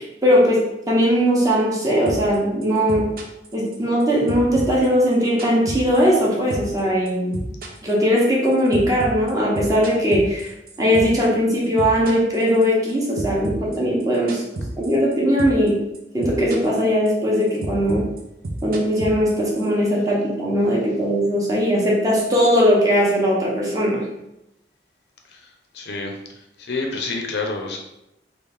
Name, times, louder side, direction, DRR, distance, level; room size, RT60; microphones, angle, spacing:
voice 1, 0.0-3.1 3.5-7.5 7.8-10.5 10.8-14.4 14.8-15.8 16.1-18.1 18.6-24.0, equal, 20° right, -4 dB, 0.8 m, -19 dB
sound 1, 2.1-2.4 2.6-4.0 4.3-6.3 6.5-6.8 7.1-11.3 11.5-12.9 13.2-15.1 15.4-15.7 15.9-16.8 17.1-19.7, right 2 dB, 55° right, 0.5 m, -31 dB
voice 2, 25.7-26.2 26.6-27.8, left 3 dB, 70° left, 2 dB, 0.5 m, -27 dB
3.2 x 2.4 x 3.4 m, 0.88 s
head